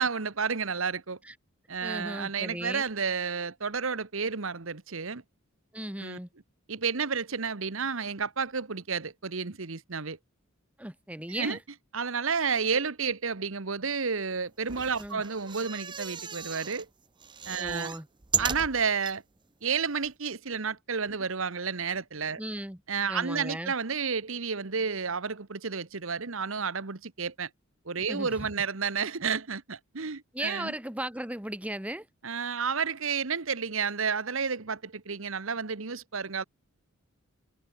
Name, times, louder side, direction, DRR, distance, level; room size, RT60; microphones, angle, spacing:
voice 1, 0.0-1.2 1.7-5.2 6.0-6.2 6.7-10.2 11.3-11.6 11.9-16.9 17.5-17.9 18.4-19.2 19.6-22.4 22.9-27.5 27.8-30.7 32.2-36.4, right 5 dB, 70° right, 1.3 m, -31 dB
voice 2, 1.8-2.8 5.7-6.3 10.8-11.6 15.0-15.2 17.6-18.1 22.4-22.8 23.1-23.7 28.1-28.5 30.3-32.1, right 1 dB, 5° right, 2.2 m, -36 dB
sound 1, 14.6-16.9 17.2-19.2 19.7-19.8 20.0-20.1, right 7 dB, 25° right, 0.7 m, -35 dB
head